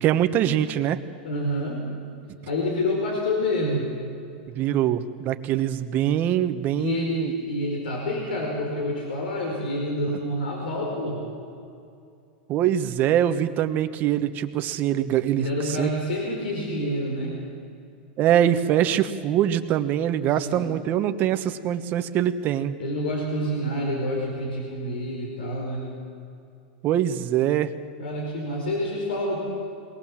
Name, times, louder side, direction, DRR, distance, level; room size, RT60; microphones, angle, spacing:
voice 1, 0.0-1.0 4.5-7.3 12.5-15.9 18.2-22.7 26.8-27.7, right 11 dB, 40° right, 9 dB, 1.1 m, -23 dB
voice 2, 1.2-1.9 2.5-3.9 6.8-11.2 15.4-17.4 20.4-20.6 22.8-25.9 28.0-29.4, left 1 dB, 90° left, 0 dB, 4.8 m, -28 dB
22.0 x 18.5 x 7.5 m, 2.4 s
supercardioid pair, 135°, 5 cm